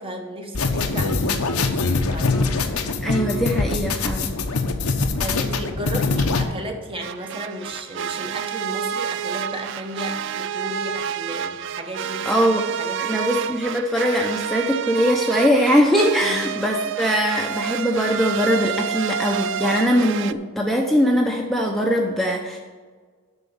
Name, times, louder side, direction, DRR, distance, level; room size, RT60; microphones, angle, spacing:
voice 1, 0.0-2.7 4.4-12.5 12.8-13.2 16.2-16.5 16.8-17.0, right 1 dB, 25° right, 4 dB, 1.0 m, -34 dB
sound 1, 0.5-6.4, left 3 dB, 80° left, 1.0 m, -23 dB
voice 2, 3.0-4.3 12.3-12.6 13.0-22.6, equal, ahead, 0 dB, 0.7 m, -21 dB
sound 2, 7.0-20.3, right 8 dB, 55° right, 0.4 m, -29 dB
8.1 x 6.2 x 7.1 m, 1.5 s
head